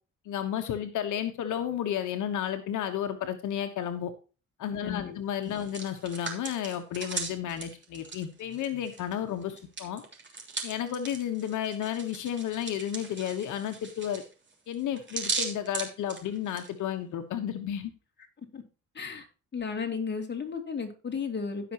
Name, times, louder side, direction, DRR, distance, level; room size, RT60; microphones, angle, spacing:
voice 1, 0.2-4.1 4.6-10.0 10.6-14.2 14.7-17.9, left 10 dB, 80° left, 7 dB, 1.2 m, -32 dB
voice 2, 4.8-5.1 5.4-5.6 18.5-18.6 18.9-19.3 19.5-21.7, left 5 dB, 35° left, 3 dB, 2.8 m, -34 dB
Hands, 5.4-9.1 9.4-16.7, right 4 dB, 40° right, 3.2 m, -38 dB
16.5 x 6.0 x 3.0 m, 0.33 s
cardioid pair, 90°, 30 cm